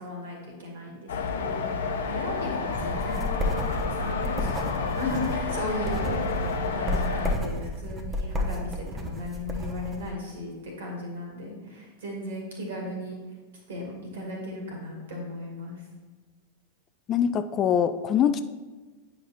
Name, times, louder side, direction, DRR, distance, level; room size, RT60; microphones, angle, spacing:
voice 1, 0.0-13.2 13.7-15.9, left 1 dB, 60° right, 0 dB, 2.2 m, -36 dB
sound 1, 1.1-7.3, left 4 dB, 65° left, 0.8 m, -30 dB
sound 2, 2.7-10.1, left 1 dB, 20° right, 1.0 m, -32 dB
voice 2, 17.1-18.4, left 8 dB, 30° left, 12 dB, 0.3 m, -23 dB
9.1 x 5.1 x 4.3 m, 1.3 s
figure-of-eight pair, 90°, 0 cm